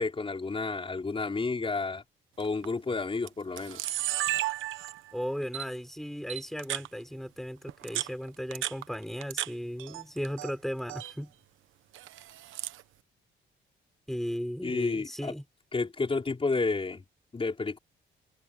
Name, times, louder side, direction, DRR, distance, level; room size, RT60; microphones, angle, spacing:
voice 1, 0.0-2.0 2.4-3.8 14.6-15.3 15.7-17.0 17.3-17.8, left 3 dB, 25° left, 4.5 m, -31 dB
Camera, 2.4-2.7 3.3-3.4 3.6-5.1 5.5-5.7 6.3-6.9 7.7-9.5 9.8-10.5 10.8-11.1 11.9-12.8, right 14 dB, 85° right, 1.1 m, -33 dB
voice 2, 5.1-11.3 14.1-15.4, equal, ahead, 5.8 m, -36 dB
open air
cardioid pair, 90°, 20 cm